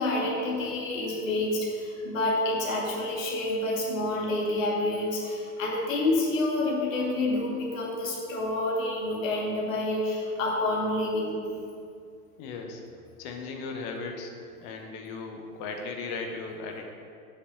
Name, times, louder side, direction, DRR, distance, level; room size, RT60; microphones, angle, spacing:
voice 1, 0.0-11.3, left 2 dB, 55° left, -3 dB, 2.4 m, -28 dB
voice 2, 12.4-12.8 13.2-14.3 14.6-16.8, left 4 dB, 35° left, 3 dB, 1.1 m, -37 dB
7.8 x 6.7 x 6.8 m, 2.4 s
figure-of-eight pair, 95°, 46 cm